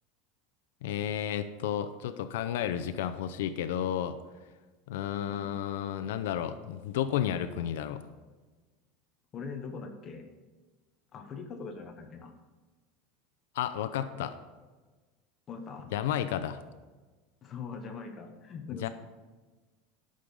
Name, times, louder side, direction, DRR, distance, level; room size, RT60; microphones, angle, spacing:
voice 1, 0.8-4.2 4.9-8.0 13.5-14.3 15.9-16.6 18.8-18.9, left 10 dB, 85° left, 10 dB, 0.6 m, -32 dB
voice 2, 5.3-5.6 9.3-10.2 11.1-12.3 15.5-15.9 17.4-18.9, left 5 dB, 25° left, 5 dB, 1.0 m, -41 dB
12.0 x 6.5 x 5.4 m, 1.3 s
supercardioid pair, 170°, 0 cm